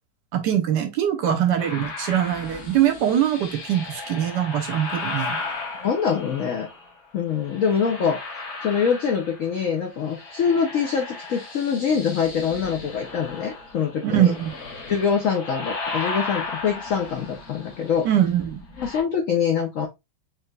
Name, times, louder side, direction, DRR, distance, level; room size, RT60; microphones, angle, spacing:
voice 1, 0.3-5.4 14.0-14.5 18.0-18.6, right 10 dB, 70° right, 1.1 m, -22 dB
sound 1, 1.6-6.9 7.4-9.7 9.9-19.0, left 3 dB, 55° left, 1.3 m, -35 dB
voice 2, 5.8-6.7 7.1-14.3 14.9-18.1 18.8-19.9, left 6 dB, 75° left, 0.7 m, -24 dB
4.5 x 3.2 x 2.3 m
omnidirectional pair, 2.2 m